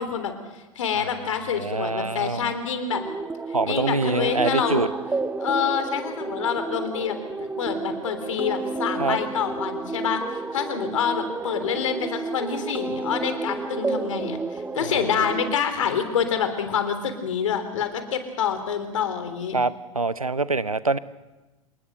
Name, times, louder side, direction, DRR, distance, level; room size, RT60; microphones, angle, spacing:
voice 1, 0.0-3.0 3.7-4.9 5.4-10.2 10.5-19.6, left 7 dB, 65° left, 9 dB, 3.6 m, -27 dB
voice 2, 1.6-2.5 3.5-4.9 9.0-9.2 14.8-15.2 19.5-21.0, right 3 dB, 90° right, 17 dB, 0.9 m, -25 dB
sound 1, 2.9-15.6, right 3 dB, 10° right, 1.1 m, -31 dB
27.5 x 20.0 x 6.7 m, 1.1 s
figure-of-eight pair, 90°, 18 cm